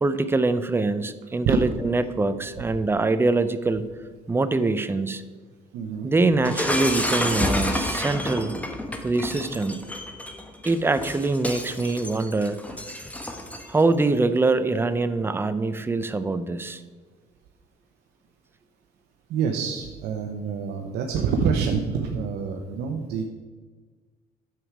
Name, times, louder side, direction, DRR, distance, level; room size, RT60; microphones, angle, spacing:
voice 1, 0.0-3.9 4.3-5.2 6.0-8.6 9.0-9.8 10.6-12.6 13.7-16.8, right 3 dB, 15° right, 12 dB, 0.5 m, -24 dB
voice 2, 5.7-6.1 19.3-23.2, right 6 dB, 80° right, 3 dB, 0.9 m, -26 dB
Shatter, 6.4-13.8, left 1 dB, 10° left, 1.0 m, -29 dB
9.2 x 7.1 x 4.8 m, 1.4 s
cardioid pair, 110°, 17 cm